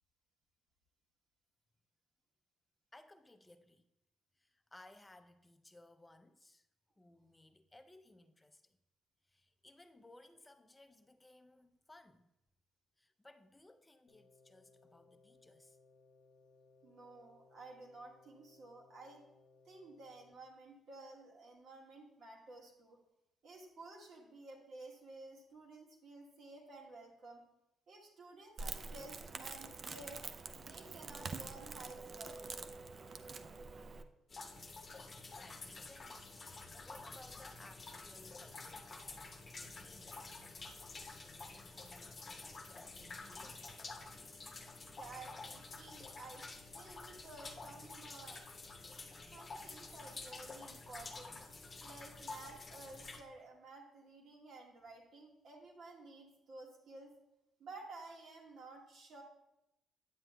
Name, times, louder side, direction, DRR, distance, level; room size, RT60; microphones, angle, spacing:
voice 1, 2.9-3.9 4.4-6.7 7.0-8.8 9.3-12.3 13.0-15.8 35.4-36.3 36.8-39.0 39.7-40.3 41.1-43.7, left 2 dB, 15° left, 0.5 m, -61 dB
sound 1, 14.1-20.3, left 4 dB, 75° left, 0.6 m, -66 dB
voice 2, 16.8-19.2 19.6-23.0 23.4-27.4 27.9-30.2 30.6-32.5 44.8-46.4 46.7-48.4 49.3-51.4 51.8-57.1 57.6-59.2, right 2 dB, 65° right, 1.6 m, -53 dB
Crackle, 28.6-34.0, right 4 dB, 45° right, 0.4 m, -46 dB
sound 2, 34.3-53.2, left 3 dB, 35° left, 0.8 m, -50 dB
9.2 x 7.4 x 2.2 m
cardioid pair, 90°, 0 cm